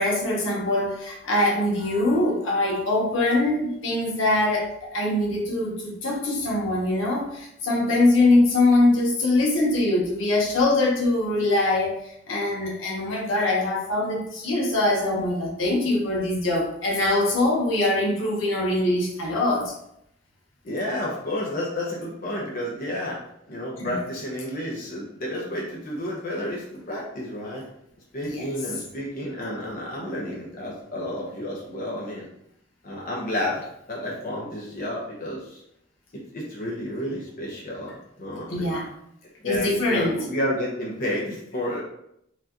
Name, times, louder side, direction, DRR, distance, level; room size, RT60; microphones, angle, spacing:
voice 1, 0.0-11.9 12.3-19.7 23.8-24.0 28.3-28.5 38.5-38.9 39.4-40.2, left 2 dB, 75° left, -3 dB, 1.1 m, -23 dB
voice 2, 20.6-23.2 23.5-27.6 28.1-32.3 32.8-35.6 36.3-38.7 39.4-41.8, left 1 dB, 50° left, -4 dB, 0.9 m, -31 dB
4.6 x 2.6 x 2.9 m, 0.76 s
head